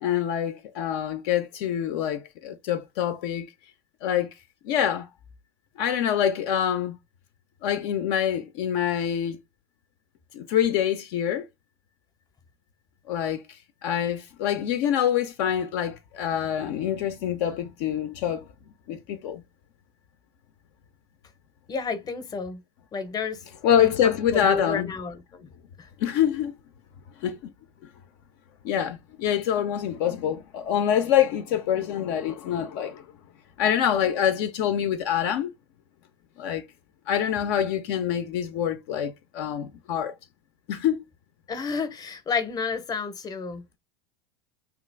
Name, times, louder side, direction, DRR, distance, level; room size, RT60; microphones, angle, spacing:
voice 1, 0.0-3.5 4.0-4.3 4.6-5.1 5.8-7.0 7.6-9.4 10.3-11.4 13.1-13.4 13.8-18.4 18.9-19.4 23.6-24.9 26.0-26.6 27.2-27.4 28.6-33.0 33.6-35.5 36.4-36.6 37.1-40.1 40.7-41.0, left 9 dB, 60° left, 0.5 m, -25 dB
voice 2, 21.7-22.6 22.9-23.4 23.8-25.5 25.8-25.9 41.5-43.8, left 5 dB, 25° left, 0.7 m, -31 dB
2.9 x 2.4 x 3.2 m
hypercardioid pair, 80°, 15 cm